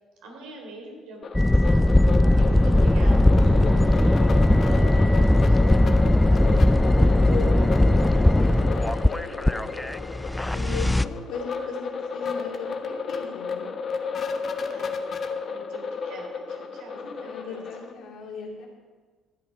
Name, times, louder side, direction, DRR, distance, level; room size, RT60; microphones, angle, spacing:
voice 1, 0.2-1.9 2.3-5.6 14.7-17.6, right 2 dB, 75° right, 0 dB, 3.2 m, -43 dB
sound 1, 1.2-17.9, left 5 dB, 50° left, 1.2 m, -33 dB
sound 2, 1.3-11.0, left 1 dB, 10° left, 0.4 m, -19 dB
voice 2, 1.9-2.8 3.4-3.7 6.3-9.7 10.5-13.7 16.9-18.7, left 4 dB, 70° left, -1 dB, 2.8 m, -38 dB
13.0 x 8.1 x 5.6 m, 1.4 s
hypercardioid pair, 65°, 0 cm